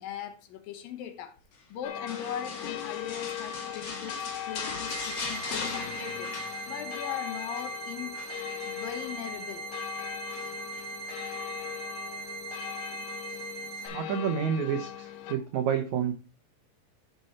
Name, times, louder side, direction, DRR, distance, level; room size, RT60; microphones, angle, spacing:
voice 1, 0.0-1.4 1.7-8.2 8.7-9.7, left 9 dB, 70° left, 2.5 m, -40 dB
sound 1, 1.8-15.4, left 10 dB, 90° left, 1.8 m, -39 dB
sound 2, 2.1-7.1 7.3-7.7 8.1-9.2 10.3-10.8 11.3-11.4, left 4 dB, 50° left, 2.2 m, -39 dB
sound 3, 4.9-13.9, right 5 dB, 50° right, 3.8 m, -40 dB
voice 2, 13.9-16.1, right 8 dB, 85° right, 1.6 m, -29 dB
12.0 x 5.3 x 4.2 m
omnidirectional pair, 4.5 m